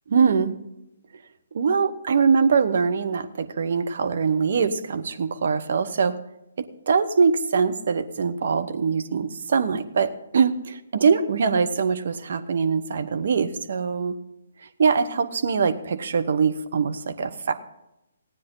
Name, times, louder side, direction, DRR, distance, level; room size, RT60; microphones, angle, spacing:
voice 1, 0.1-0.6 1.5-6.2 6.6-14.2 14.8-17.5, right 5 dB, 55° right, 8 dB, 1.1 m, -23 dB
17.5 x 9.4 x 3.9 m, 0.88 s
figure-of-eight pair, 135°, 0 cm